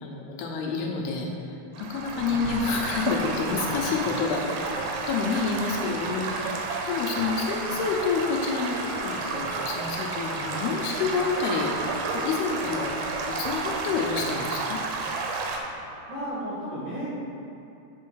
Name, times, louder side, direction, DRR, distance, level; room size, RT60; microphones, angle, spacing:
voice 1, 0.0-1.3 1.8-4.5 4.7-13.0 13.2-14.8, left 5 dB, 80° left, 0 dB, 2.6 m, -28 dB
Stream / Gurgling / Trickle dribble, 1.7-15.6, right 3 dB, 80° right, 2.8 m, -31 dB
voice 2, 2.3-2.7 16.1-17.1, equal, 45° right, -10 dB, 2.3 m, -34 dB
sound 1, 6.7-16.3, right 3 dB, 65° right, 2.0 m, -45 dB
7.4 x 5.5 x 6.1 m, 2.7 s
omnidirectional pair, 4.8 m